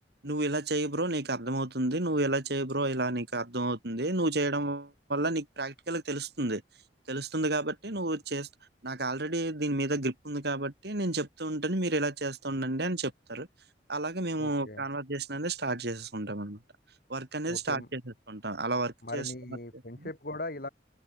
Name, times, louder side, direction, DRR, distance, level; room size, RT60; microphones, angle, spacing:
voice 1, 0.2-6.6 7.1-8.5 8.8-13.5 13.9-16.6 17.1-18.0 18.3-19.3 20.0-20.1, right 2 dB, 65° right, 3.3 m, -31 dB
voice 2, 14.3-14.9 17.5-17.9 19.0-20.7, left 2 dB, 55° left, 6.3 m, -39 dB
head